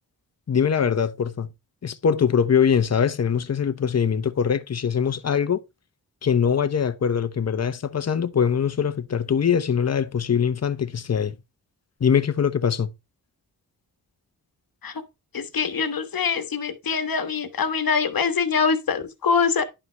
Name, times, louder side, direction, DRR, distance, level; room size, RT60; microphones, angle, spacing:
voice 1, 0.5-1.5 1.8-5.6 6.2-11.4 12.0-12.9, left 7 dB, 45° left, 0.8 m, -22 dB
voice 2, 15.3-19.6, left 5 dB, 70° left, 1.3 m, -24 dB
11.0 x 5.6 x 3.3 m
wide cardioid pair, 100°, 36 cm